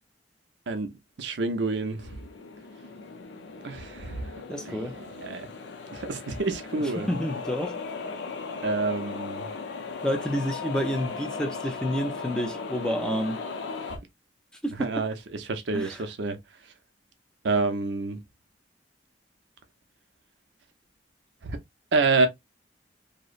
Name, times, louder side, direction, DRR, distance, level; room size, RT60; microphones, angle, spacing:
voice 1, 1.2-2.1 3.6-4.2 4.7-4.9 5.2-5.5 5.9-7.1 8.6-9.5 14.8-16.4 17.4-18.2 21.4-21.6 21.9-22.3, right 3 dB, 75° right, 0.5 m, -27 dB
sound 1, 1.5-14.0, left 4 dB, 80° left, 0.6 m, -37 dB
voice 2, 4.5-4.9 6.8-7.8 10.0-13.4 14.6-15.0 15.7-16.0, equal, 5° left, 0.4 m, -29 dB
2.8 x 2.0 x 2.4 m
head